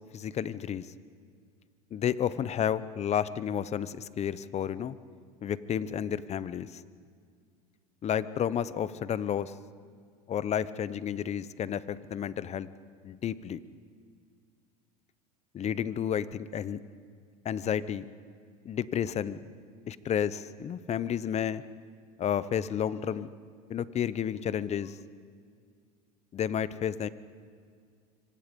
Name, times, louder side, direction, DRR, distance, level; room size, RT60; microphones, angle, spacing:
voice 1, 0.1-0.9 1.9-4.9 5.4-6.8 8.0-9.5 10.3-12.7 13.0-13.6 15.5-16.8 17.4-18.0 18.6-19.4 19.9-21.6 22.2-23.3 23.7-25.0 26.3-27.1, left 9 dB, 35° left, 16 dB, 0.9 m, -31 dB
26.0 x 25.0 x 5.4 m, 2.1 s
supercardioid pair, 100°, 20 cm